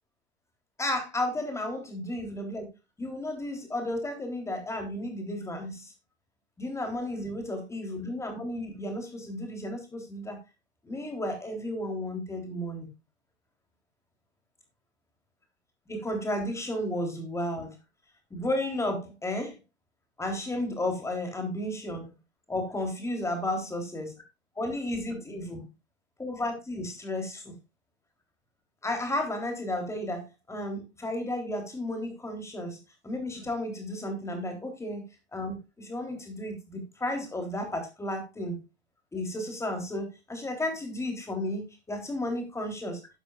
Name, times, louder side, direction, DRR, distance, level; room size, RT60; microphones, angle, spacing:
voice 1, 0.8-2.7 3.0-5.9 6.6-10.4 10.8-12.9 15.9-17.7 18.3-19.6 20.2-22.1 22.5-24.1 24.6-25.6 26.2-27.5 28.8-32.8 33.0-35.0 35.3-38.6 39.1-43.0, left 1 dB, 10° left, 4 dB, 3.5 m, -33 dB
11.0 x 11.0 x 2.4 m, 0.25 s
figure-of-eight pair, 95°, 34 cm